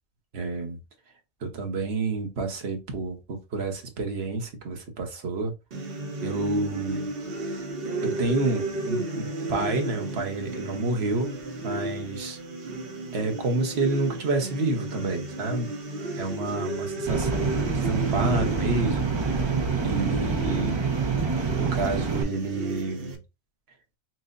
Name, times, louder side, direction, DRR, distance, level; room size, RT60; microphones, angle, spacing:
voice 1, 0.3-0.8 1.4-5.5 6.2-7.1 8.0-11.4 11.6-12.4 13.1-15.7 16.2-19.5 19.8-20.8 21.6-23.2, right 3 dB, 85° right, 1.2 m, -29 dB
sound 1, 5.7-23.2, right 2 dB, 65° right, 1.0 m, -34 dB
sound 2, 17.1-22.2, right 5 dB, 35° right, 0.5 m, -26 dB
5.9 x 2.1 x 2.5 m
omnidirectional pair, 1.0 m